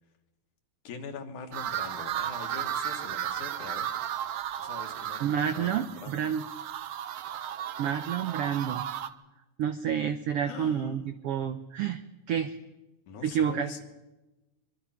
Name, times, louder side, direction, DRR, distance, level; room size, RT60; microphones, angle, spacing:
voice 1, 0.8-4.0 4.6-6.3 10.4-11.1 13.1-13.8, left 5 dB, 65° left, 5 dB, 3.0 m, -43 dB
sound 1, 1.5-9.1, right 10 dB, 70° right, 1.4 m, -35 dB
voice 2, 5.2-6.4 7.8-8.9 9.6-12.0 12.3-12.6 13.2-13.7, right 8 dB, 90° right, 9 dB, 1.3 m, -29 dB
24.0 x 22.5 x 5.8 m, 1.1 s
omnidirectional pair, 3.8 m